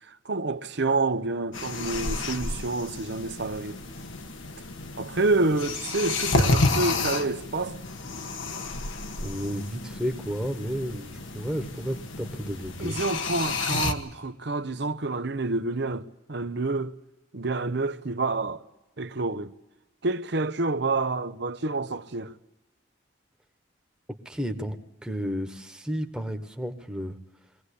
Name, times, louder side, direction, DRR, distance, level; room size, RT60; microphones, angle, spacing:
voice 1, 0.1-3.8 5.0-7.8 12.8-16.9 17.3-18.6 19.0-19.5 20.0-22.3, right 3 dB, 60° right, 0.9 m, -28 dB
sound 1, 1.5-13.9, left 3 dB, 80° left, 1.6 m, -31 dB
voice 2, 9.2-13.0 24.2-24.8 25.0-27.2, equal, 5° right, 1.3 m, -32 dB
22.5 x 17.5 x 8.4 m
head